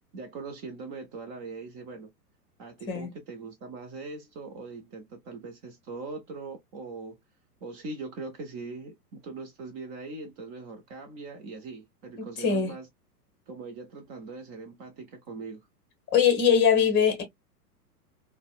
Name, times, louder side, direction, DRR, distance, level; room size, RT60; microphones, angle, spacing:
voice 1, 0.1-2.1 2.6-7.2 7.6-12.9 13.5-15.6, right 3 dB, 20° right, 0.5 m, -41 dB
voice 2, 12.2-12.7 16.1-17.2, left 7 dB, 20° left, 1.0 m, -22 dB
4.0 x 2.2 x 2.2 m
figure-of-eight pair, 100°, 48 cm